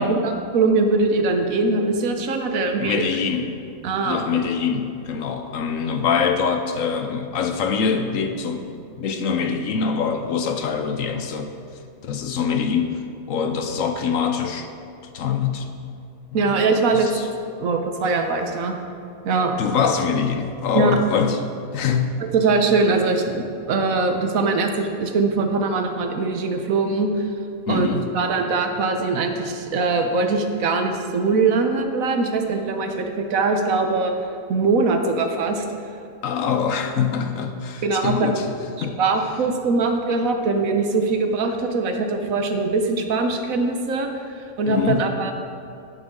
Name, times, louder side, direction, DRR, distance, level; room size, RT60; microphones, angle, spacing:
voice 1, 0.0-3.0 3.8-4.2 16.3-17.1 17.6-18.7 19.2-19.5 20.7-21.0 22.3-27.3 27.7-34.1 34.5-35.6 37.8-38.3 38.8-44.1 44.6-45.3, right 3 dB, 75° right, 5 dB, 1.3 m, -22 dB
voice 2, 2.8-3.6 4.0-8.7 9.0-11.5 12.0-13.0 13.3-14.7 15.1-15.7 16.4-16.5 16.9-17.3 19.6-21.4 21.7-22.2 27.7-28.1 36.2-38.5 38.8-39.0 44.7-45.2, left 6 dB, 70° left, 6 dB, 1.1 m, -24 dB
11.0 x 9.0 x 3.7 m, 2.5 s
omnidirectional pair, 1.5 m